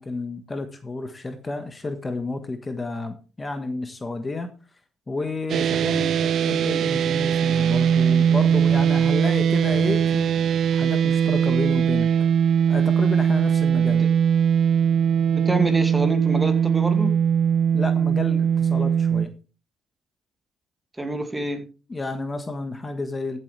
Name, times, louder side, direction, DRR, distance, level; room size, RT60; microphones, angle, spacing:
voice 1, 0.0-4.5 5.1-10.4 10.7-12.1 12.7-14.1 17.7-19.3 21.9-23.4, left 3 dB, 25° left, 1.4 m, -31 dB
sound 1, 5.5-19.3, right 8 dB, 65° right, 0.5 m, -20 dB
voice 2, 15.3-17.1 21.0-21.6, right 1 dB, 15° right, 2.3 m, -27 dB
14.0 x 7.7 x 3.3 m
cardioid pair, 80°, 0 cm